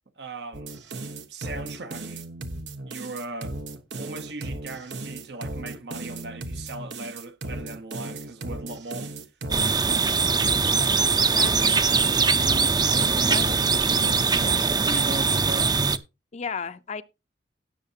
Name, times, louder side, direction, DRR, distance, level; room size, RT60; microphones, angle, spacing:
voice 1, 0.2-0.7 1.3-2.2 2.8-3.6 4.0-9.1 14.8-15.9, right 2 dB, 70° right, 1.0 m, -38 dB
sound 1, 0.5-14.6, right 2 dB, 85° right, 1.2 m, -36 dB
sound 2, 9.5-16.0, right 5 dB, 25° right, 0.6 m, -22 dB
voice 2, 11.3-11.8 13.3-14.2 14.9-15.1 16.3-17.0, left 6 dB, 40° left, 0.5 m, -36 dB
17.5 x 6.5 x 2.8 m
head